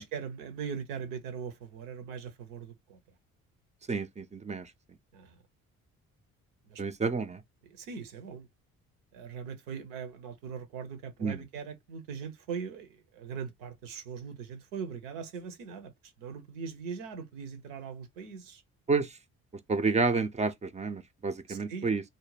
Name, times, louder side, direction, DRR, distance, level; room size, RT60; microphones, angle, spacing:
voice 1, 0.0-3.0 5.1-5.4 6.7-6.8 7.6-8.5 9.1-18.6 21.5-21.9, right 6 dB, 70° right, 0.8 m, -40 dB
voice 2, 3.9-4.7 6.8-7.4 11.2-11.4 18.9-19.1 19.7-22.0, right 4 dB, 15° right, 0.4 m, -29 dB
2.5 x 2.1 x 3.2 m
figure-of-eight pair, 45°, 42 cm